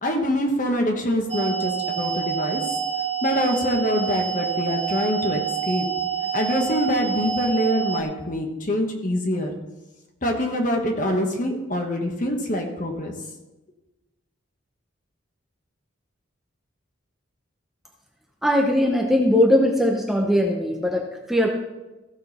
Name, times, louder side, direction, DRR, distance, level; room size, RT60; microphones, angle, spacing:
voice 1, 0.0-2.6 3.2-5.4 5.7-5.9 6.3-9.5 10.2-13.1, left 1 dB, 40° left, 2 dB, 1.5 m, -24 dB
sound 1, 1.3-8.0, right 8 dB, 30° right, 0.6 m, -27 dB
voice 2, 18.4-21.5, left 1 dB, ahead, 0 dB, 0.8 m, -20 dB
15.5 x 6.3 x 4.3 m, 1.0 s
head